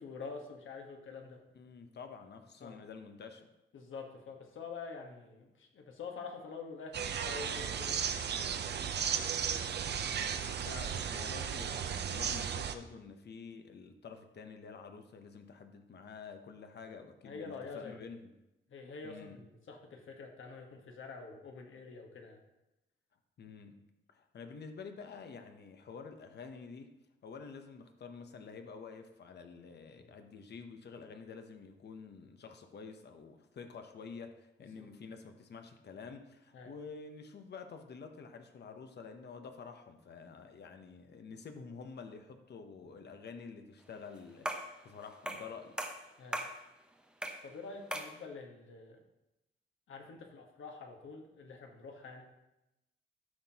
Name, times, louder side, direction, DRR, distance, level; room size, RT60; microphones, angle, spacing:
voice 1, 0.0-1.4 2.6-2.8 3.7-8.1 17.2-18.0 18.7-22.4 34.8-34.9 36.5-36.8 46.2-46.4 47.4-49.0 49.9-52.2, left 4 dB, 75° left, 3 dB, 1.3 m, -46 dB
voice 2, 1.5-3.5 10.6-18.3 19.0-19.4 23.4-26.9 27.2-45.8, left 5 dB, 55° left, 6 dB, 0.8 m, -49 dB
sound 1, 6.9-12.8, right 7 dB, 55° right, 0.6 m, -35 dB
sound 2, 44.4-44.8 45.3-45.5 45.8-46.6 47.2-47.5 47.9-48.2, right 1 dB, 5° right, 0.7 m, -38 dB
13.0 x 5.8 x 2.9 m, 0.94 s
wide cardioid pair, 140°, 20 cm